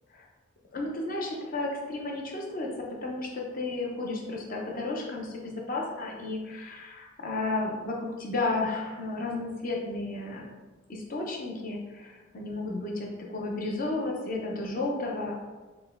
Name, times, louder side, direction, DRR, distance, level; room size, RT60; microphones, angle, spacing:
voice 1, 0.7-10.4 10.9-15.3, left 2 dB, 45° left, -1 dB, 0.6 m, -33 dB
4.1 x 2.2 x 3.5 m, 1.3 s
head